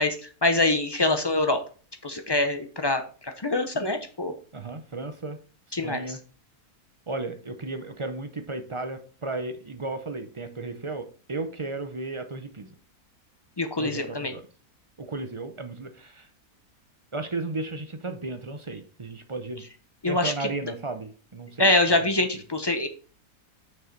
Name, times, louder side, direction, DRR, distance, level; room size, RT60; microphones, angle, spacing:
voice 1, 0.0-1.6 2.0-4.3 5.7-6.2 13.6-14.3 20.0-20.5 21.6-22.9, left 2 dB, 40° left, 7 dB, 0.3 m, -25 dB
voice 2, 4.5-5.4 5.8-6.2 7.1-12.7 13.8-14.4 15.0-16.3 17.1-19.6 20.1-21.7, right 3 dB, 35° right, 7 dB, 0.5 m, -34 dB
6.5 x 5.4 x 4.6 m, 0.39 s
omnidirectional pair, 1.6 m